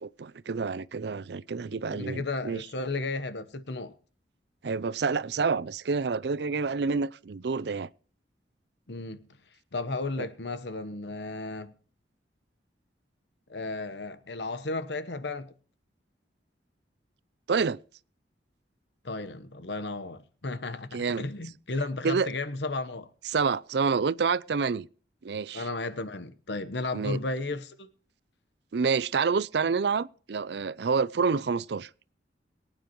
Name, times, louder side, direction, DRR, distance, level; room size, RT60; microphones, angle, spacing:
voice 1, 0.0-2.6 4.6-7.9 10.2-10.3 17.5-17.8 20.9-21.3 22.0-22.3 23.3-24.9 25.2-25.7 26.9-27.2 28.7-31.9, right 5 dB, 65° right, 0.5 m, -28 dB
voice 2, 1.7-4.0 8.9-9.3 9.7-11.7 13.5-15.5 19.0-23.1 25.5-27.9, left 2 dB, 75° left, 1.1 m, -34 dB
23.0 x 9.2 x 3.1 m
head